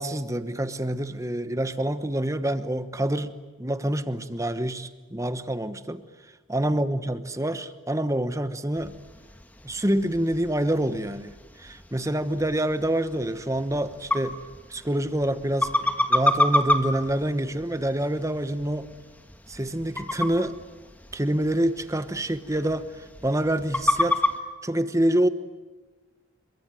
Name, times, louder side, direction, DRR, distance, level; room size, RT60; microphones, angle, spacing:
voice 1, 0.0-6.0 6.5-8.9 9.6-11.3 11.6-14.4 14.7-18.9 19.5-20.6 21.1-24.2 24.6-25.3, right 1 dB, 15° right, 11 dB, 1.1 m, -27 dB
sound 1, 8.7-24.4, left 1 dB, 10° left, 1.6 m, -30 dB
27.5 x 23.0 x 9.2 m, 1.3 s
head